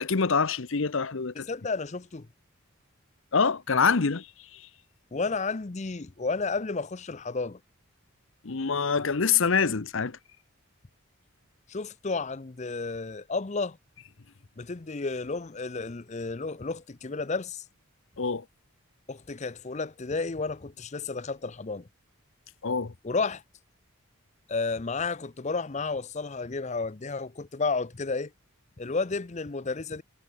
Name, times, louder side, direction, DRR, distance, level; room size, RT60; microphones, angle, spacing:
voice 1, 0.0-1.5 3.3-4.3 4.5-4.6 8.4-10.2 18.2-18.4 22.6-22.9, left 5 dB, 60° left, 0.8 m, -25 dB
voice 2, 1.3-2.3 5.1-7.6 11.7-13.8 14.6-17.6 19.1-21.8 23.0-23.4 24.5-28.3 28.8-30.0, left 4 dB, 30° left, 0.6 m, -32 dB
head